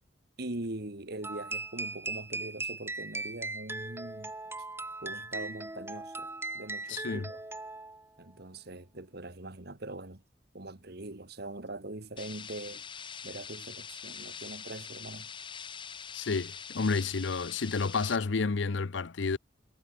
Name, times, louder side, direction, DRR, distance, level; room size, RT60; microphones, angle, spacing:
voice 1, 0.4-4.3 5.0-6.3 6.5-7.4 8.2-10.2 10.5-12.8 13.2-15.3, right 2 dB, 60° right, 2.1 m, -42 dB
sound 1, 1.2-8.1, right 2 dB, 15° right, 2.1 m, -39 dB
voice 2, 6.9-7.3 16.1-19.4, left 4 dB, 80° left, 0.7 m, -30 dB
sound 2, 12.2-18.2, left 7 dB, 25° left, 0.8 m, -44 dB
head